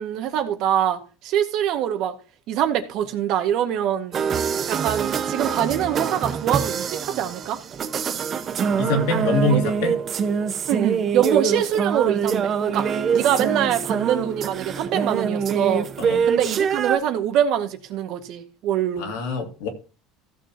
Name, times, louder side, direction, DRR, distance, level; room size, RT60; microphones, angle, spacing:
voice 1, 0.0-2.2 2.5-4.3 4.7-7.6 9.5-9.6 10.7-15.9 16.2-19.1, right 10 dB, 60° right, 1.8 m, -24 dB
sound 1, 4.1-17.0, right 6 dB, 35° right, 0.8 m, -25 dB
voice 2, 8.8-9.9 16.0-16.2 19.0-19.7, left 2 dB, 80° left, 2.7 m, -24 dB
15.5 x 6.7 x 2.9 m
supercardioid pair, 115°, 0 cm